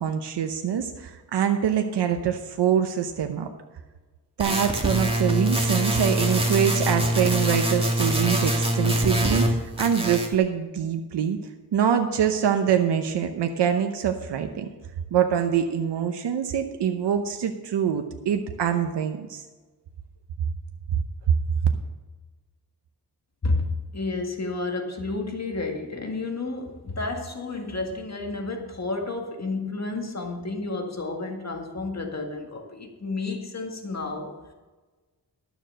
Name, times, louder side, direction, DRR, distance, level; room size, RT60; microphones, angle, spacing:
voice 1, 0.0-3.5 4.4-11.4 11.7-14.7 15.1-19.4, right 8 dB, 85° right, 6 dB, 0.9 m, -24 dB
sound 1, 4.4-9.5 9.8-10.3, right 1 dB, 15° right, 2.0 m, -24 dB
voice 2, 23.4-34.3, left 3 dB, 40° left, 3 dB, 1.9 m, -31 dB
12.0 x 7.2 x 6.3 m, 1.3 s
cardioid pair, 80°, 40 cm